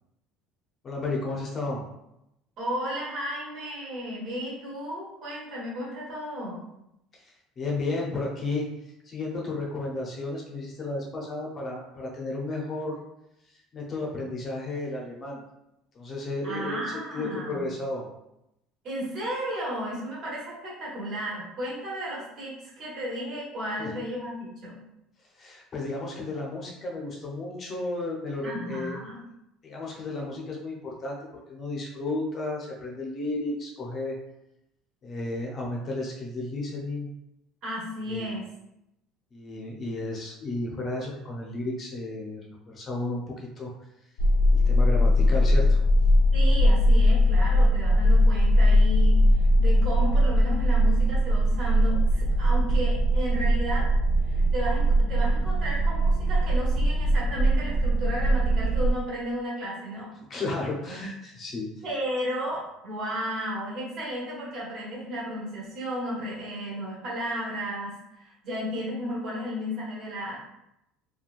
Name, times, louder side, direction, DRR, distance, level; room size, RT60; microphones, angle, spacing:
voice 1, 0.8-1.8 7.6-8.7 9.1-13.0 13.7-15.4 15.9-16.8 17.1-18.1 23.8-23.9 25.4-28.9 29.6-31.2 31.5-34.2 35.0-37.1 38.1-38.3 39.3-42.4 42.7-43.7 44.5-45.8 60.3-61.7, left 2 dB, 30° left, -2 dB, 0.5 m, -33 dB
voice 2, 2.6-6.6 16.4-17.7 18.8-24.8 28.4-29.2 37.6-38.4 46.3-49.2 49.6-53.9 54.2-60.1 61.8-70.4, equal, 45° right, -5 dB, 1.2 m, -33 dB
sound 1, 44.2-58.9, equal, 80° left, 0.4 m, -21 dB
3.0 x 2.2 x 2.4 m, 0.84 s
cardioid pair, 160°, 0 cm